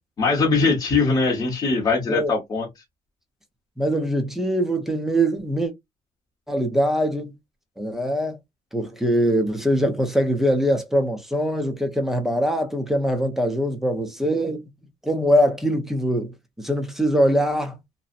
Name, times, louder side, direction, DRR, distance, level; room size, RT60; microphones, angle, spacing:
voice 1, 0.2-2.7, left 4 dB, 25° left, 0.8 m, -21 dB
voice 2, 3.8-5.7 6.5-7.3 7.8-8.4 8.7-14.6 15.0-17.8, equal, ahead, 0.5 m, -22 dB
2.6 x 2.0 x 2.4 m
cardioid pair, 165°, 15 cm